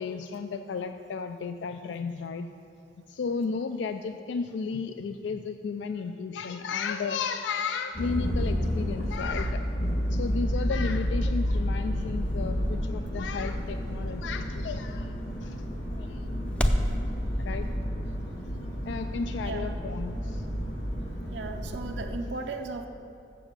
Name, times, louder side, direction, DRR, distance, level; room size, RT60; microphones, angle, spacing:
voice 1, 0.0-2.5 3.1-9.6 10.1-15.1 15.4-15.7 16.0-16.3 17.4-17.7 18.9-20.5, left 5 dB, 75° left, 7 dB, 0.3 m, -33 dB
sound 1, 7.9-22.1, equal, 55° left, 2.3 m, -31 dB
sound 2, 10.7-17.0, equal, 5° left, 0.4 m, -35 dB
voice 2, 19.4-19.8 21.3-22.9, right 3 dB, 75° right, 4 dB, 0.5 m, -36 dB
7.1 x 6.9 x 7.3 m, 2.6 s
head